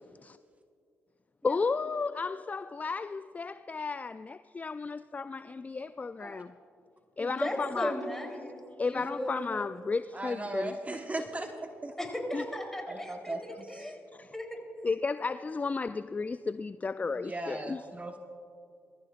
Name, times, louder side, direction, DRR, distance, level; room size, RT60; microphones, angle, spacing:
voice 1, 1.4-6.5 7.2-7.9 8.8-10.8 12.3-12.4 14.2-14.3 14.8-17.8, left 4 dB, 30° left, 0.3 m, -33 dB
voice 2, 7.2-8.6 8.9-9.6 12.0-14.0 14.3-14.6, left 1 dB, 10° left, 3.5 m, -36 dB
voice 3, 10.1-12.0 12.9-13.9 17.1-18.2, right 2 dB, 25° right, 1.2 m, -38 dB
23.0 x 14.5 x 2.5 m
hypercardioid pair, 45°, 6 cm